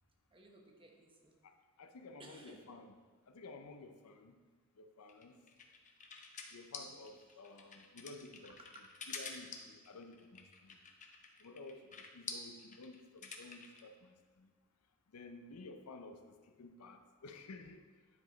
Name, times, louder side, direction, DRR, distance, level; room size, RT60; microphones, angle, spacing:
voice 1, 0.3-1.3 2.2-2.6 5.3-5.5 7.0-7.8 8.6-8.8, right 2 dB, 25° right, 1 dB, 1.0 m, -60 dB
voice 2, 1.4-3.0 3.3-4.3 4.8-5.3 6.5-8.6 9.1-10.8 11.4-14.5 15.1-17.8, left 3 dB, 85° left, 6 dB, 0.6 m, -53 dB
sound 1, 5.1-13.8, left 5 dB, 35° left, 0.7 m, -48 dB
9.8 x 5.0 x 3.9 m, 1.5 s
head